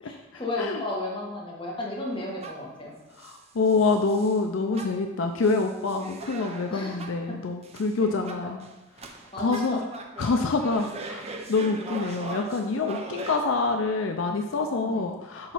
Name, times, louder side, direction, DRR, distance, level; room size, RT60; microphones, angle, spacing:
voice 1, 0.0-2.9 6.7-7.4 8.0-8.5 9.3-9.6 14.9-15.0, left 2 dB, 25° left, -4 dB, 1.6 m, -34 dB
sound 1, 2.1-2.8 3.2-4.4 4.7-7.3 7.6-7.9 8.3-13.4, right 3 dB, 30° right, 0.6 m, -40 dB
voice 2, 3.2-8.7 9.4-9.8 10.2-15.5, left 3 dB, 70° left, 5 dB, 0.5 m, -26 dB
8.6 x 3.1 x 5.6 m, 1.0 s
head